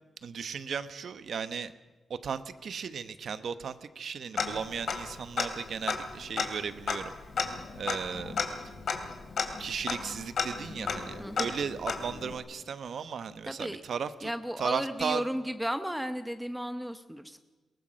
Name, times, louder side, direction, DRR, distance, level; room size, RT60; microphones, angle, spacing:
voice 1, 0.2-1.7 2.1-7.1 7.7-8.4 9.6-14.3 14.6-15.3, right 6 dB, 65° right, 12 dB, 1.0 m, -36 dB
Tick-tock, 4.4-5.1 5.4-5.5 5.8-12.4, left 5 dB, 60° left, 2.5 m, -33 dB
voice 2, 11.2-11.5 13.4-13.8 14.2-17.4, equal, 5° right, 9 dB, 0.8 m, -34 dB
22.0 x 19.0 x 6.3 m, 1.2 s
cardioid pair, 110°, 0 cm